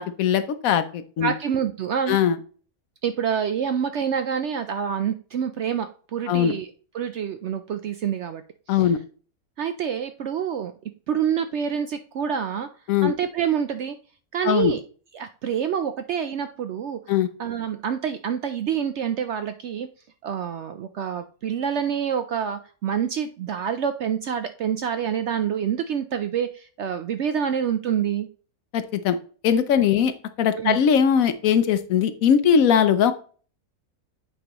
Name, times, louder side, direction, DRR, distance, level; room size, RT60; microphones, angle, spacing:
voice 1, 0.0-1.3 2.1-2.4 6.3-6.5 8.7-9.0 12.9-13.1 14.4-14.7 17.1-17.3 28.7-29.2 29.4-30.1 30.4-33.1, left 8 dB, 70° left, 11 dB, 1.0 m, -20 dB
voice 2, 1.2-2.2 3.0-6.7 6.9-8.4 8.7-8.9 9.6-10.7 11.1-12.7 13.0-14.0 14.3-14.8 15.1-17.0 17.4-19.9 20.2-28.3 30.6-30.8, right 8 dB, 65° right, 9 dB, 0.7 m, -27 dB
8.7 x 5.0 x 3.0 m, 0.41 s
omnidirectional pair, 1.6 m